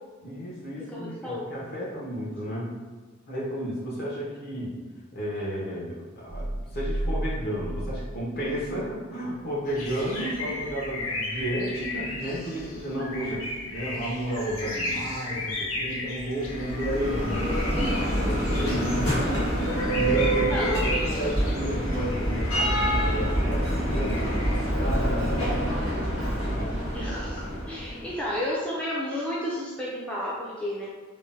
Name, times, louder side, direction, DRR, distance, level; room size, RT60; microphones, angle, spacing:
voice 1, 0.2-2.7 3.3-4.8 5.1-13.4 13.7-17.6 18.0-26.8, equal, 50° left, -5 dB, 0.8 m, -32 dB
voice 2, 0.9-1.5 13.2-13.4 20.4-21.2 26.9-30.9, left 1 dB, 5° left, -7 dB, 0.3 m, -32 dB
sound 1, 6.3-9.0, right 1 dB, 70° right, 0.5 m, -32 dB
sound 2, 9.7-24.6, left 2 dB, 75° left, 0.6 m, -35 dB
Bell, 16.4-28.2, right 1 dB, 90° left, 1.4 m, -26 dB
3.6 x 2.0 x 2.6 m, 1.4 s
head